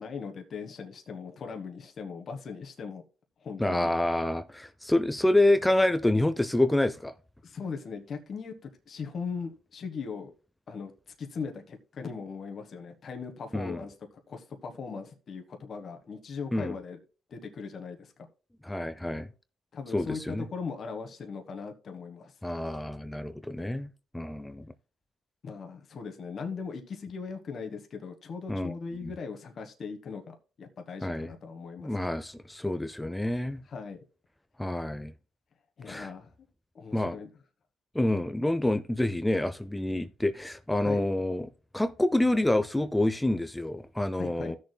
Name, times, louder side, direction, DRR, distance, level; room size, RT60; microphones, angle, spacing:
voice 1, 0.0-3.0 3.4-3.9 7.4-8.5 8.9-10.3 10.7-13.9 14.3-17.0 17.3-18.1 19.7-22.3 25.4-32.2 33.7-34.0 35.8-36.3 36.7-37.3 40.8-41.0 44.1-44.6, left 5 dB, 50° left, 1.3 m, -39 dB
voice 2, 3.6-7.1 13.5-13.8 16.5-16.7 18.6-19.3 19.9-20.4 22.4-23.9 24.1-24.7 28.5-28.7 29.0-29.1 31.0-31.3 31.8-33.6 34.6-35.1 35.9-36.1 36.9-37.2 37.9-41.5 41.7-44.6, left 1 dB, 10° left, 0.5 m, -27 dB
15.5 x 6.7 x 2.2 m
cardioid pair, 90°, 0 cm